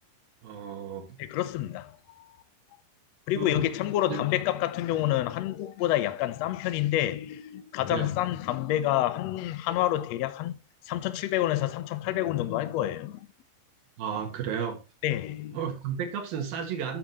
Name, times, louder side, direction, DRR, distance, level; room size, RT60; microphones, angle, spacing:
voice 1, 0.4-1.2 3.3-3.7 4.1-4.2 7.9-8.1 14.0-14.8 15.5-17.0, right 7 dB, 85° right, 3.5 m, -33 dB
voice 2, 1.2-2.3 3.3-10.6 10.9-13.3 15.0-15.6, left 14 dB, 80° left, 1.5 m, -28 dB
9.8 x 8.8 x 3.0 m
omnidirectional pair, 4.0 m